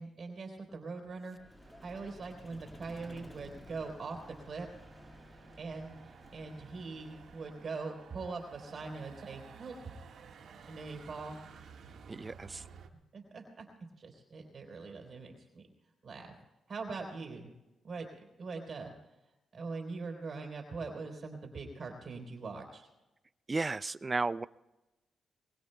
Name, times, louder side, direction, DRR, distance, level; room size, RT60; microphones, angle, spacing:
voice 1, 0.0-1.4 1.8-4.7 5.6-9.8 10.7-11.4 13.1-13.7 14.0-15.6 16.0-16.3 16.7-17.5 17.8-18.1 18.4-18.9 19.5-22.9, right 4 dB, 55° right, 2 dB, 3.7 m, -42 dB
Vehicle, 1.3-7.8, equal, 15° left, 2.0 m, -54 dB
Motor vehicle (road), 1.6-12.9, right 6 dB, 75° right, 1.6 m, -55 dB
voice 2, 12.1-12.6 23.5-24.5, right 3 dB, 30° right, 17 dB, 0.4 m, -34 dB
23.0 x 22.5 x 2.3 m, 1.0 s
cardioid pair, 75°, 0 cm